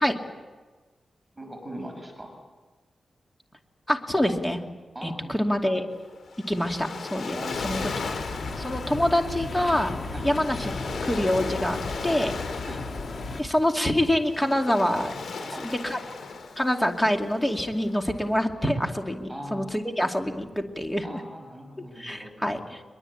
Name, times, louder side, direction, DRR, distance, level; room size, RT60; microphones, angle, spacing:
voice 1, 1.3-2.3 4.9-5.4 7.3-7.8 10.1-10.3 12.7-12.8 15.4-16.1 19.3-19.6 21.0-22.3, equal, 10° right, 2 dB, 6.1 m, -40 dB
voice 2, 3.9-4.6 5.0-5.9 6.5-7.4 7.6-7.8 8.6-9.9 10.2-10.7 11.0-11.8 12.0-12.3 13.4-15.1 15.6-16.0 16.6-21.2 22.0-22.8, left 1 dB, 10° left, 3 dB, 2.5 m, -25 dB
Waves surf, 5.9-18.3, left 4 dB, 85° left, 3.9 m, -38 dB
sound 1, 7.5-13.4, left 3 dB, 50° left, 2.0 m, -34 dB
23.0 x 22.5 x 8.7 m, 1.3 s
wide cardioid pair, 145°, 0 cm